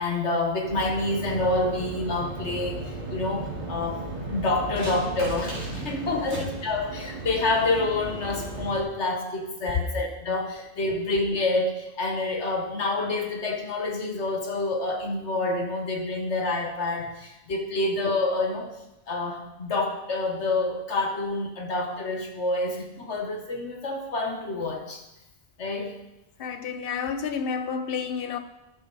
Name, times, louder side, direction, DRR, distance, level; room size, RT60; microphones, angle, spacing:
voice 1, 0.0-18.7 19.1-25.0 25.6-25.9, left 2 dB, 80° left, 1.7 m, -28 dB
sound 1, 0.6-8.8, right 2 dB, 35° right, 3.0 m, -35 dB
voice 2, 6.1-6.4 26.4-28.4, left 6 dB, 60° left, 0.9 m, -30 dB
12.5 x 6.5 x 4.0 m
omnidirectional pair, 1.2 m